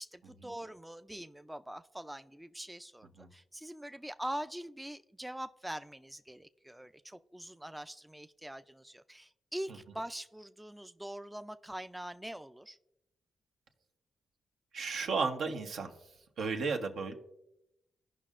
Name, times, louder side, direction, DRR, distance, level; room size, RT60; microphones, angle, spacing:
voice 1, 0.0-12.8, right 1 dB, 10° right, 10 dB, 0.4 m, -43 dB
voice 2, 14.7-15.9 16.4-17.2, right 4 dB, 75° right, 4 dB, 1.0 m, -33 dB
16.0 x 5.4 x 2.5 m, 0.87 s
supercardioid pair, 55°, 0 cm